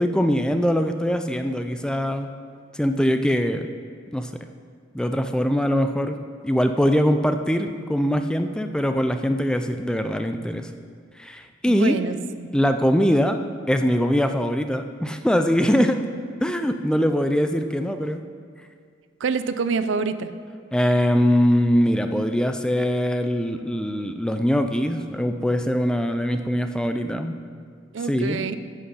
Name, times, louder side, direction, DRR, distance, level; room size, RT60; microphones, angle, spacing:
voice 1, 0.0-2.3 2.7-3.7 4.1-4.3 4.9-6.2 6.4-10.7 11.2-12.0 12.5-13.4 13.7-16.0 16.4-18.2 20.7-27.4 28.1-28.4, equal, 5° left, 7 dB, 0.3 m, -22 dB
voice 2, 11.7-12.5 19.2-20.3 27.9-28.6, right 5 dB, 75° right, 11 dB, 0.5 m, -26 dB
11.0 x 6.5 x 5.5 m, 2.1 s
head